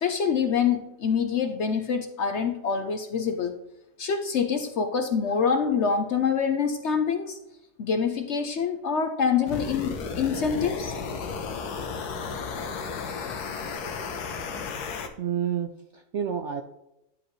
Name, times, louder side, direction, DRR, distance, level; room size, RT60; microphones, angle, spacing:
voice 1, 0.0-3.5 4.0-7.4 7.8-10.9, left 6 dB, 55° left, 7 dB, 0.8 m, -26 dB
sound 1, 9.5-15.1, left 5 dB, 75° left, 1.4 m, -33 dB
voice 2, 15.2-16.6, right 8 dB, 65° right, 6 dB, 0.7 m, -29 dB
10.5 x 5.1 x 3.1 m, 0.87 s
omnidirectional pair, 1.7 m